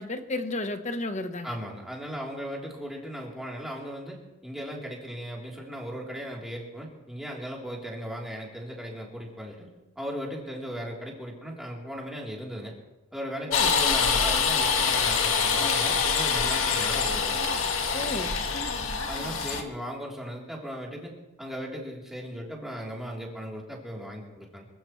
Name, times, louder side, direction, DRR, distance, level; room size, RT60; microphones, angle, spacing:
voice 1, 0.0-1.6 13.5-13.7 17.9-18.4, left 2 dB, 35° left, 8 dB, 1.1 m, -33 dB
voice 2, 1.4-9.7 10.0-12.7 13.1-17.4 19.1-21.1 21.4-24.7, equal, ahead, -3 dB, 3.5 m, -37 dB
sound 1, 13.5-19.6, left 5 dB, 80° left, 1.7 m, -25 dB
26.0 x 15.5 x 3.2 m, 1.0 s
head